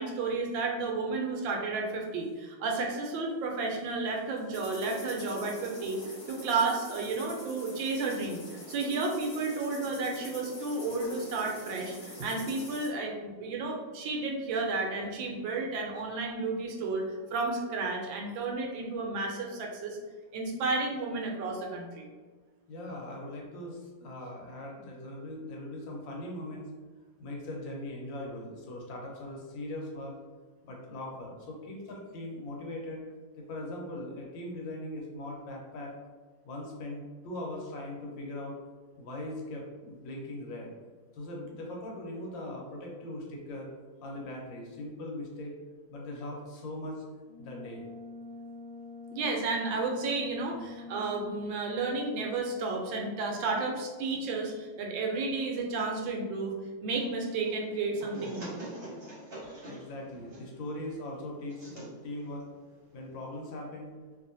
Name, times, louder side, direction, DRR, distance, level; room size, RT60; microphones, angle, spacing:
voice 1, 0.0-20.0 20.3-22.1 49.1-56.5 56.8-58.6, right 3 dB, 80° right, 1 dB, 1.3 m, -32 dB
sound 1, 4.5-12.9, left 1 dB, 50° left, 0.9 m, -45 dB
voice 2, 22.7-26.7 27.2-30.1 30.6-33.0 33.4-35.9 36.4-38.5 39.0-40.7 41.1-43.7 44.0-45.5 45.9-47.0 47.4-47.8 59.7-62.5 62.9-64.0, left 1 dB, 75° left, -1 dB, 1.4 m, -40 dB
Brass instrument, 47.2-51.6, left 3 dB, 20° left, 0.7 m, -45 dB
sound 2, 56.9-63.6, right 1 dB, 40° right, 1.0 m, -46 dB
3.0 x 2.7 x 2.6 m, 1.4 s
omnidirectional pair, 2.1 m